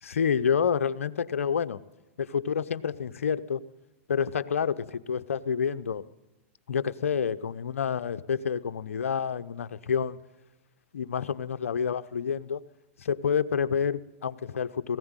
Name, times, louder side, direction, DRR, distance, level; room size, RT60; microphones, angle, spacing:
voice 1, 0.0-1.8 2.2-3.6 4.1-6.0 6.7-10.2 10.9-12.6 13.0-15.0, left 7 dB, 85° left, 13 dB, 0.9 m, -28 dB
18.5 x 15.5 x 9.1 m, 1.0 s
hypercardioid pair, 110°, 7 cm